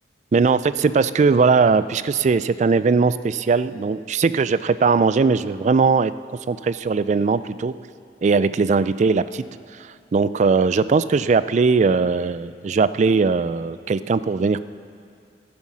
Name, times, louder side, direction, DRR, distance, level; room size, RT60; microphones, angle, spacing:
voice 1, 0.3-6.1 6.5-7.8 8.2-9.4 9.7-14.6, right 4 dB, 40° right, 15 dB, 0.3 m, -19 dB
14.5 x 9.7 x 6.2 m, 2.3 s
head